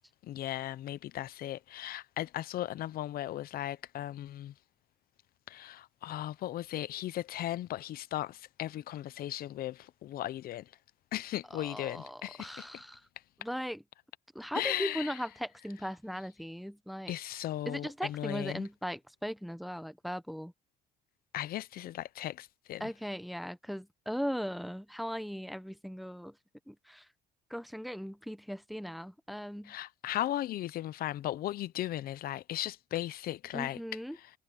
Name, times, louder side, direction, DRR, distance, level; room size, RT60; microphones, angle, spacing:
voice 1, 0.2-4.5 5.5-10.7 11.1-12.7 14.5-15.2 17.1-18.7 21.3-22.9 29.6-33.8 34.1-34.3, left 13 dB, 60° left, 0.7 m, -37 dB
voice 2, 11.6-13.0 13.4-13.8 14.3-17.1 17.7-20.5 22.8-26.3 26.7-27.0 27.5-29.7 33.5-34.2, equal, ahead, 0.9 m, -38 dB
cardioid pair, 110°, 17 cm